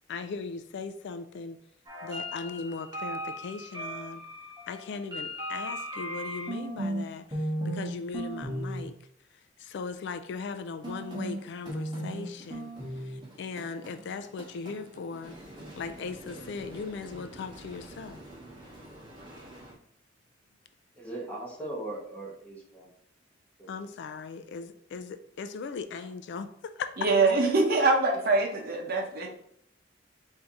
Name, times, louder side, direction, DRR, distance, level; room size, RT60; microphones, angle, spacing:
voice 1, 0.1-1.6 2.0-4.2 4.7-8.9 9.6-12.7 13.0-15.4 15.8-18.2 23.7-26.9 27.2-27.3, left 4 dB, 65° left, 10 dB, 0.3 m, -38 dB
sound 1, 1.9-7.0 7.3-7.9 8.1-8.8 10.8-19.7, right 1 dB, 25° right, 1.2 m, -38 dB
voice 2, 21.0-22.9 23.6-23.7, right 2 dB, 10° left, -3 dB, 1.2 m, -39 dB
voice 3, 27.0-29.3, right 3 dB, 55° right, 1 dB, 0.8 m, -24 dB
4.5 x 2.7 x 3.6 m, 0.67 s
head